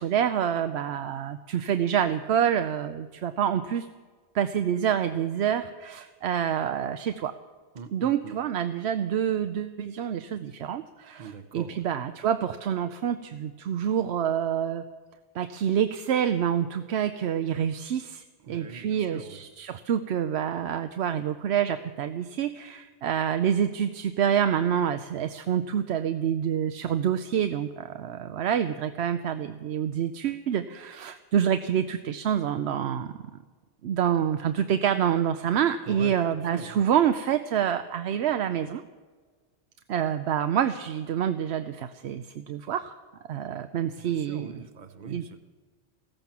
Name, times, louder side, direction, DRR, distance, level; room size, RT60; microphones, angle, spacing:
voice 1, 0.0-3.9 4.3-7.3 7.9-14.8 15.3-33.1 33.8-38.8 39.9-42.9 43.3-44.5 45.0-45.2, right 9 dB, 80° right, 9 dB, 0.9 m, -27 dB
voice 2, 7.7-8.4 11.2-11.9 18.4-19.4 35.9-36.8 44.0-45.4, right 5 dB, 45° right, 9 dB, 1.0 m, -42 dB
15.5 x 14.5 x 6.0 m, 1.4 s
omnidirectional pair, 1.1 m